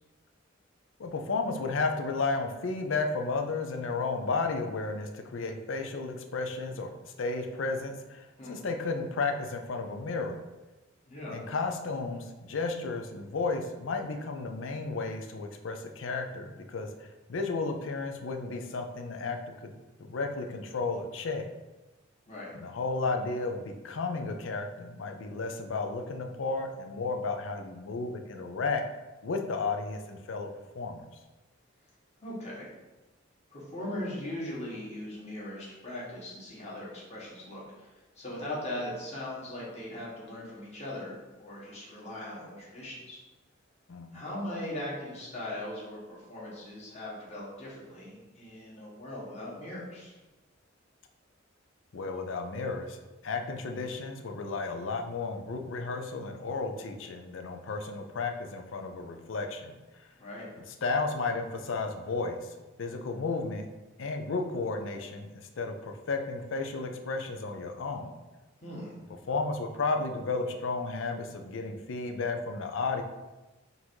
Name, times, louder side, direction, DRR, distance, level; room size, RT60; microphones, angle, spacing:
voice 1, 1.0-6.9 7.2-10.4 11.3-19.7 20.1-21.5 22.5-28.8 29.2-30.5 30.7-31.0 43.9-44.2 51.9-53.0 53.2-60.0 60.8-63.6 64.0-68.2 69.3-73.0, left 3 dB, 65° left, 5 dB, 0.5 m, -33 dB
voice 2, 11.1-11.4 22.3-22.5 32.2-32.7 33.5-43.2 44.1-50.2 60.2-60.5 68.6-69.0, left 1 dB, 35° left, -6 dB, 1.4 m, -39 dB
4.0 x 2.6 x 4.5 m, 1.1 s
head